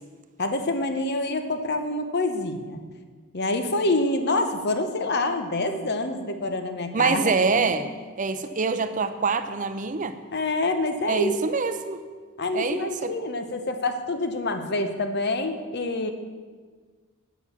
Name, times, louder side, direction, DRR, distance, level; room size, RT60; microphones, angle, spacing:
voice 1, 0.4-2.8 3.3-7.8 10.3-11.3 12.4-16.1, left 2 dB, 50° left, 7 dB, 0.9 m, -27 dB
voice 2, 6.9-7.9 8.2-10.1 11.1-12.0 12.5-13.1, right 4 dB, 35° right, 9 dB, 0.6 m, -25 dB
9.4 x 6.0 x 7.0 m, 1.5 s
head